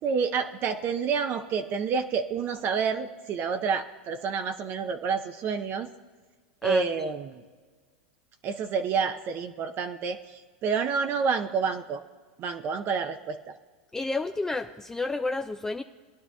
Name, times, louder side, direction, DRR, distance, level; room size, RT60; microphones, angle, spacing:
voice 1, 0.0-5.9 6.6-7.4 8.4-12.0 12.4-13.6, right 5 dB, 40° right, 7 dB, 0.6 m, -29 dB
voice 2, 13.9-15.8, left 3 dB, 10° left, 6 dB, 0.4 m, -30 dB
20.5 x 10.5 x 2.3 m, 1.5 s
hypercardioid pair, 110°, 6 cm